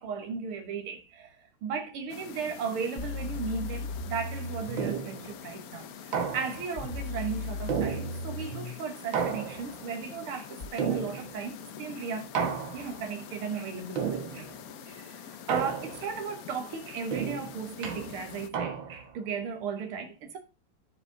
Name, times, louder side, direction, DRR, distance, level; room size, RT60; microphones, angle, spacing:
voice 1, 0.0-1.4 1.6-12.4 12.7-14.5 14.9-20.4, right 6 dB, 90° right, 2.2 m, -36 dB
sound 1, 2.1-18.5, left 10 dB, 65° left, 0.9 m, -46 dB
sound 2, 3.0-4.9 6.8-8.8 10.6-10.7, left 2 dB, 40° left, 1.6 m, -36 dB
sound 3, 4.8-5.3 6.1-6.8 7.7-8.5 9.1-9.9 10.8-11.5 12.4-13.1 14.0-14.6 15.5-16.2 17.1-19.2, right 7 dB, 65° right, 2.0 m, -33 dB
12.0 x 4.9 x 3.8 m
omnidirectional pair, 2.3 m